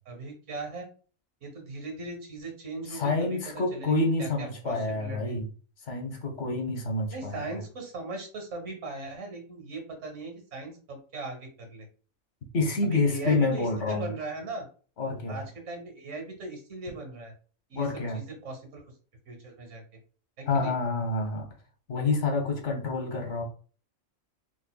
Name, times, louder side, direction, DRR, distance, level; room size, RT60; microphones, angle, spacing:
voice 1, 0.1-0.9 1.4-3.4 3.7-3.9 4.2-5.4 7.1-11.9 12.8-14.7 15.3-17.3 17.7-17.9 18.1-18.8 19.3-19.8 20.4-20.7, right 3 dB, 65° right, 3 dB, 1.5 m, -39 dB
voice 2, 2.9-5.5 5.8-7.6 12.5-14.1 15.0-15.5 17.7-18.2 20.5-21.5 21.9-23.4, left 3 dB, 60° left, 3 dB, 1.3 m, -28 dB
4.2 x 3.0 x 2.2 m, 0.40 s
omnidirectional pair, 1.4 m